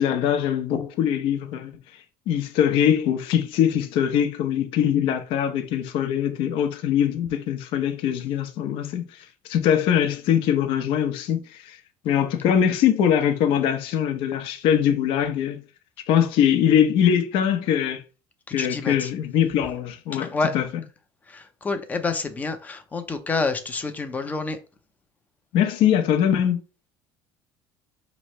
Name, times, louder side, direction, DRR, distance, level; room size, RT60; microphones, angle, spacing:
voice 1, 0.0-1.7 2.3-11.8 12.0-15.6 16.1-18.0 18.5-20.3 20.5-20.7 25.5-26.6, left 9 dB, 60° left, 0.7 m, -22 dB
voice 2, 18.6-19.1 20.1-20.5 21.3-24.6, left 3 dB, 15° left, 0.5 m, -28 dB
5.3 x 3.0 x 3.1 m
cardioid pair, 165°, 10 cm